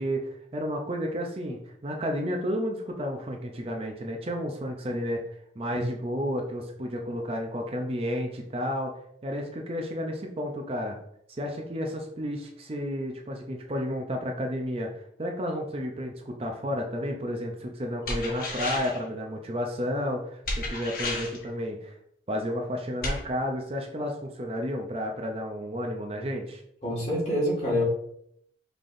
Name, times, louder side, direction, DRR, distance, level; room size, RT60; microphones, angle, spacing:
voice 1, 0.0-5.2 5.6-8.9 9.2-11.0 11.3-22.0 22.3-26.6, equal, 30° right, 2 dB, 0.5 m, -32 dB
sound 1, 18.1-19.0 20.4-21.4 23.0-23.2, left 2 dB, 50° left, 1.1 m, -32 dB
voice 2, 26.8-27.8, equal, 35° left, -4 dB, 1.8 m, -26 dB
5.6 x 3.4 x 2.6 m, 0.71 s
head